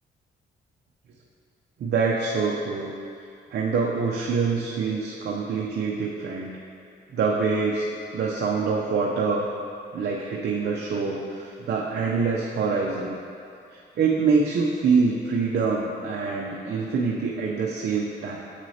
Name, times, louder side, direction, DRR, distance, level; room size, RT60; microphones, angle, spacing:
voice 1, 1.8-2.9 3.5-6.6 7.1-7.9 8.1-9.5 9.9-13.2 13.7-18.4, right 4 dB, 60° right, -2 dB, 0.6 m, -25 dB
7.4 x 6.1 x 2.8 m, 2.5 s
cardioid pair, 90°, 20 cm